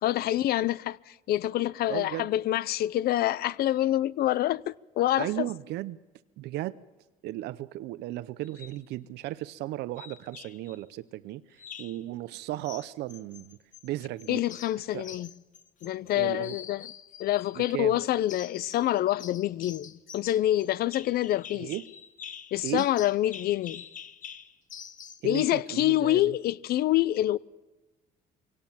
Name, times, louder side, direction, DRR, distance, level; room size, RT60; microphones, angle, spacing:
voice 1, 0.0-5.5 14.3-15.3 15.8-16.9 17.2-21.7 22.5-23.8 25.2-27.4, left 14 dB, 65° left, 0.6 m, -26 dB
voice 2, 1.9-2.3 5.2-6.0 6.4-6.8 7.2-13.6 13.8-14.4 14.9-15.1 16.1-16.6 17.6-18.0 21.5-21.9 22.6-22.9 25.2-26.4, right 15 dB, 80° right, 0.6 m, -35 dB
sound 1, 8.4-8.8 10.0-10.8 11.6-12.0 12.6-13.9 14.2-16.1 16.4-17.8 18.3-18.9 19.2-25.3, left 8 dB, 50° left, 1.3 m, -46 dB
24.0 x 18.0 x 7.3 m
cardioid pair, 110°, 17 cm